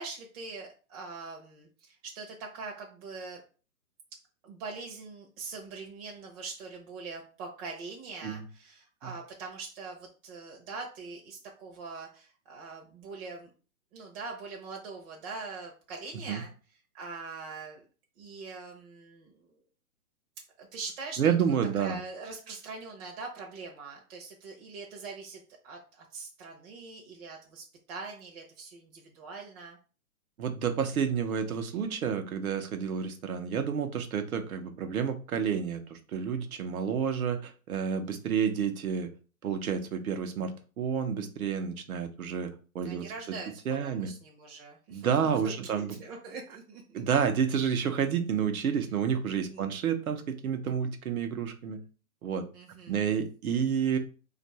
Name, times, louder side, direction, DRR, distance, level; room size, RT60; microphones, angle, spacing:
voice 1, 0.0-3.4 4.4-13.5 13.9-16.5 16.9-17.8 18.2-19.5 20.6-21.3 21.8-29.8 42.8-45.2 45.4-47.0 49.5-49.7 52.5-53.1, right 4 dB, 40° right, -1 dB, 0.8 m, -43 dB
voice 2, 21.2-22.0 30.4-39.1 39.4-42.5 42.7-43.0 43.7-44.1 44.9-46.0 46.9-51.8 52.2-52.4 52.9-54.0, right 7 dB, 75° right, 7 dB, 0.8 m, -30 dB
2.6 x 2.5 x 4.2 m, 0.36 s
hypercardioid pair, 130°, 43 cm